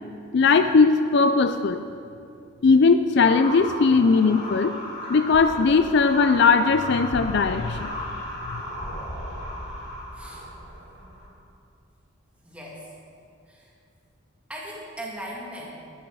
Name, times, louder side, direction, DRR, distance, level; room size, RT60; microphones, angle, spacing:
voice 1, 0.3-1.8 2.6-4.8 5.1-7.9 8.5-8.6, left 4 dB, 50° left, 9 dB, 0.4 m, -19 dB
sound 1, 3.2-11.3, left 1 dB, 35° left, 3.2 m, -35 dB
voice 2, 10.1-10.5 12.4-12.9 13.5-13.7 14.5-15.7, right 1 dB, 5° right, -4 dB, 2.0 m, -38 dB
12.0 x 12.0 x 4.8 m, 2.5 s
head